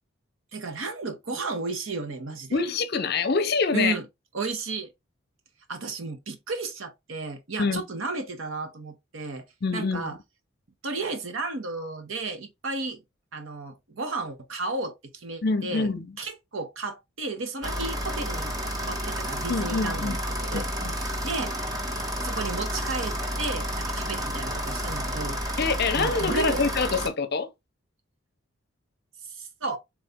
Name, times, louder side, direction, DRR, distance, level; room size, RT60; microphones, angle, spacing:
voice 1, 0.5-2.6 3.7-4.0 4.3-4.9 5.7-9.5 9.7-10.2 10.8-13.0 13.3-15.9 16.2-20.7 21.2-21.8 22.2-25.4 25.9-26.6 29.3-29.8, right 3 dB, 75° right, 1.0 m, -33 dB
voice 2, 2.5-3.9 7.6-7.8 9.6-10.2 15.4-16.1 19.5-20.2 20.5-20.9 25.6-27.5, left 4 dB, 50° left, 0.6 m, -26 dB
sound 1, 17.6-27.1, equal, 15° right, 0.7 m, -30 dB
3.9 x 3.1 x 3.5 m
head